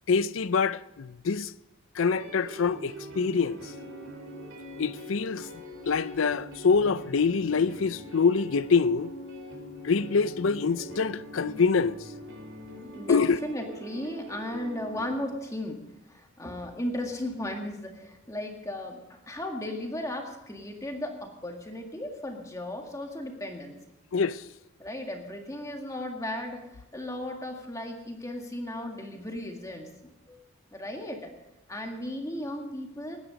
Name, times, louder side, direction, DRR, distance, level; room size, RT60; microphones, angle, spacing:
voice 1, 0.1-1.5 1.9-3.6 4.8-5.5 5.9-9.1 9.8-12.0 13.1-13.4 24.1-24.4, left 5 dB, 75° left, 0.5 m, -25 dB
sound 1, 2.0-15.1, equal, 60° right, 4.0 m, -43 dB
voice 2, 12.9-23.8 24.8-30.4 30.7-31.3 31.7-33.2, left 1 dB, 15° left, 2.0 m, -36 dB
20.0 x 9.6 x 5.2 m
head